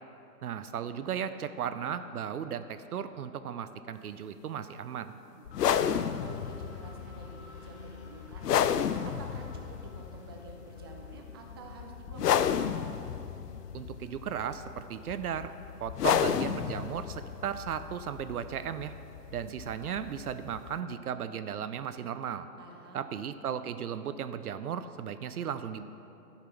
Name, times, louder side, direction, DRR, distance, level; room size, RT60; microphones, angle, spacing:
voice 1, 0.4-5.1 13.7-15.5 15.8-18.9 19.3-22.5 22.9-25.8, right 8 dB, 65° right, 11 dB, 0.6 m, -36 dB
voice 2, 5.2-5.8 6.2-12.6 22.6-23.1, right 3 dB, 15° right, 1 dB, 0.5 m, -50 dB
sound 1, 5.5-20.8, left 9 dB, 70° left, 0.6 m, -32 dB
sound 2, 5.5-17.3, left 2 dB, 40° left, 1.3 m, -53 dB
12.5 x 5.8 x 5.9 m, 2.9 s
figure-of-eight pair, 130°, 49 cm